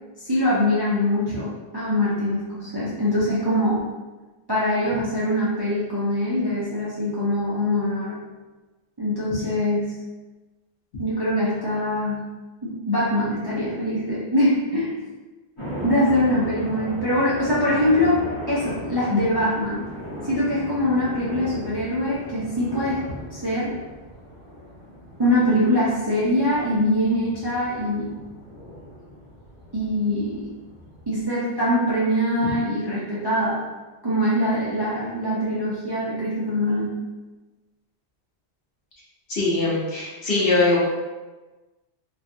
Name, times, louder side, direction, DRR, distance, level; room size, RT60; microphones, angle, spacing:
voice 1, 0.2-3.8 4.5-8.2 9.0-9.9 11.0-12.2 12.6-14.9 15.8-19.8 20.2-23.0 23.3-23.8 25.2-28.1 29.7-30.5 31.1-33.6 34.0-36.9, left 1 dB, 30° right, -9 dB, 0.5 m, -23 dB
sound 1, 15.6-31.2, equal, 30° left, 1.0 m, -38 dB
voice 2, 39.3-40.8, left 3 dB, 60° left, -6 dB, 1.0 m, -21 dB
3.2 x 2.3 x 2.5 m, 1.2 s
omnidirectional pair, 1.1 m